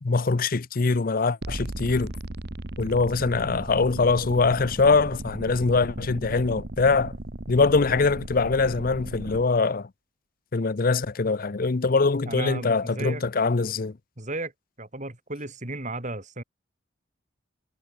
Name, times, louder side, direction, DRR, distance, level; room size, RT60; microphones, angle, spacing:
voice 1, 0.0-2.1 2.8-7.1 7.5-9.9 10.5-14.0, left 4 dB, 45° left, 0.6 m, -23 dB
sound 1, 1.4-9.4, right 1 dB, 55° right, 1.5 m, -36 dB
voice 2, 12.3-13.2 14.2-14.5 14.8-16.4, right 2 dB, 40° right, 3.7 m, -34 dB
head